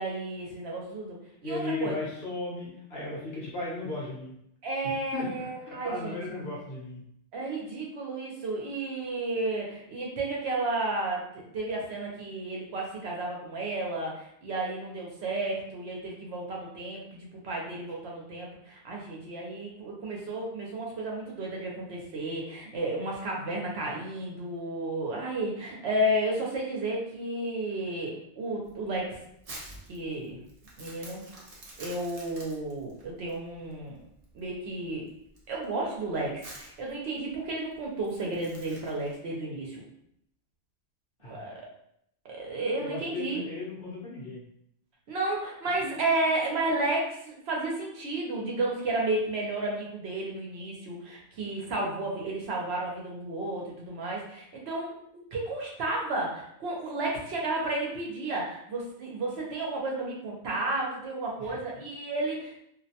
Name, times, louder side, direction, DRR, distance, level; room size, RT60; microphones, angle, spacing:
voice 1, 0.0-2.0 4.6-6.4 7.3-29.2 29.9-30.4 30.8-31.2 31.8-34.0 34.3-35.1 35.5-39.8 41.3-41.5 42.2-43.4 45.1-62.6, right 2 dB, 65° right, -2 dB, 0.8 m, -32 dB
voice 2, 1.4-4.3 4.8-7.0 41.2-41.4 42.8-44.4 45.8-46.0 61.4-61.6, left 2 dB, 55° left, -6 dB, 0.9 m, -36 dB
Crumpling crinkling, 28.6-39.2, right 2 dB, 45° right, 0.5 m, -49 dB
2.4 x 2.1 x 2.7 m, 0.73 s
omnidirectional pair, 1.3 m